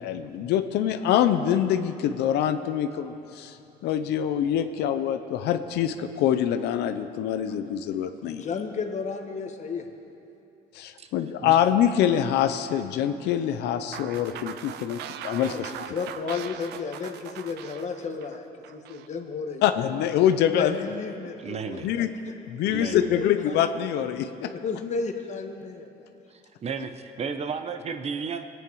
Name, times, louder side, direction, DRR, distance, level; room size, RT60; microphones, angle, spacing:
voice 1, 0.0-3.6 3.8-8.4 10.7-15.7 19.6-20.9 21.8-22.1 22.5-24.5, left 10 dB, 80° left, 9 dB, 0.7 m, -25 dB
voice 2, 8.2-9.9 15.5-15.6 15.9-19.6 20.5-22.0 22.8-23.7 24.4-26.1, left 5 dB, 45° left, 4 dB, 1.4 m, -33 dB
sound 1, 13.9-19.1, right 9 dB, 80° right, 0.6 m, -40 dB
voice 3, 21.4-21.9 22.7-23.2 26.3-28.4, right 5 dB, 40° right, 8 dB, 0.9 m, -33 dB
21.0 x 9.2 x 4.8 m, 2.7 s
cardioid pair, 110°, 17 cm